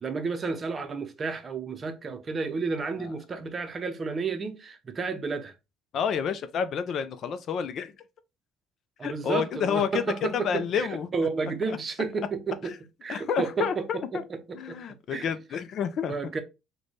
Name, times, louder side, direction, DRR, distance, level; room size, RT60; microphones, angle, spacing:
voice 1, 0.0-5.5 9.0-10.9 11.1-12.7 13.0-13.9 14.1-14.8 15.1-15.3 16.1-16.4, right 4 dB, 35° right, 0.6 m, -31 dB
voice 2, 5.9-7.9 9.0-11.1 11.7-11.8 12.6-12.8 13.1-14.2 14.5-16.2, left 7 dB, 55° left, 0.4 m, -29 dB
3.9 x 2.2 x 3.1 m
cardioid pair, 100°, 0 cm